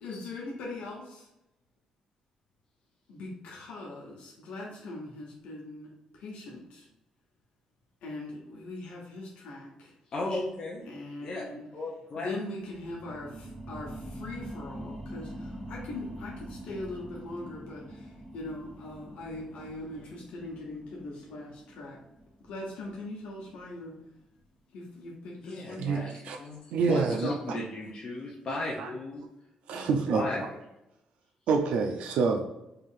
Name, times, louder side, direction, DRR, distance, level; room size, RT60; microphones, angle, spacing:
voice 1, 0.0-1.3 3.1-6.9 8.0-9.9 10.9-11.6 12.1-22.0 22.4-24.0 24.7-25.9, left 2 dB, 90° left, -3 dB, 0.9 m, -41 dB
voice 2, 10.1-10.9 11.2-12.3 25.4-29.2 29.7-30.5, left 2 dB, 40° left, -3 dB, 0.6 m, -36 dB
sound 1, 12.6-23.8 24.2-24.3, right 1 dB, 10° right, 0.7 m, -44 dB
voice 3, 25.8-26.4 26.7-27.3 28.8-28.9 29.7-30.2 31.5-32.4, right 5 dB, 85° right, 3 dB, 0.4 m, -27 dB
3.3 x 2.7 x 3.7 m, 0.89 s
cardioid pair, 155°, 2 cm